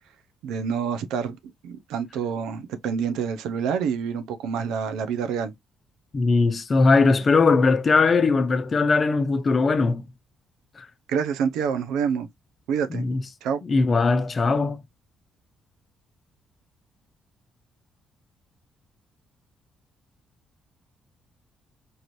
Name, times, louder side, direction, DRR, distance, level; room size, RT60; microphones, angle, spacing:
voice 1, 0.4-1.4 1.6-5.5 11.1-12.3 12.7-13.0 13.4-13.6, right 7 dB, 90° right, 0.6 m, -27 dB
voice 2, 6.1-10.0 10.8-10.9 12.9-13.2 13.6-14.8, left 4 dB, 40° left, 0.7 m, -20 dB
4.7 x 2.5 x 3.1 m
cardioid pair, 90°, 0 cm